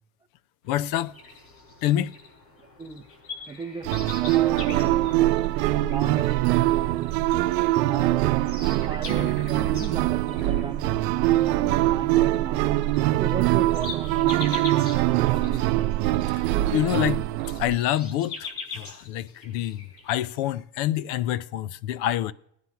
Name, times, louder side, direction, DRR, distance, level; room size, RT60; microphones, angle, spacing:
sound 1, 0.6-20.2, left 4 dB, 80° left, 7.3 m, -43 dB
voice 1, 0.7-1.1 1.8-2.1 16.7-17.2 17.6-18.5 18.7-22.3, left 12 dB, 60° left, 0.7 m, -26 dB
voice 2, 3.5-5.5 5.8-7.5 7.7-8.5 8.9-12.7 13.2-14.7 15.1-15.6, right 5 dB, 10° right, 0.5 m, -36 dB
sound 2, 3.8-17.7, right 16 dB, 75° right, 0.7 m, -23 dB
16.5 x 9.8 x 5.8 m
supercardioid pair, 125°, 48 cm